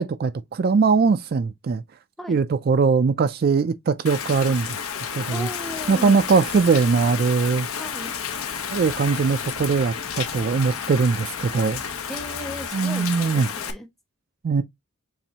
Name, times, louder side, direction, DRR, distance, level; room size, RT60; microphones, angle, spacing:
voice 1, 0.0-1.8 2.3-4.8 5.1-5.5 5.9-7.7 8.7-11.8 12.7-13.5 14.4-14.6, right 5 dB, 45° right, 0.3 m, -21 dB
Rain, 4.1-13.7, left 7 dB, 80° left, 0.8 m, -31 dB
sound 1, 4.9-12.7, left 2 dB, 65° left, 1.5 m, -46 dB
voice 2, 5.3-6.2 7.8-8.1 12.1-13.9, equal, ahead, 0.7 m, -36 dB
7.2 x 2.6 x 2.8 m
head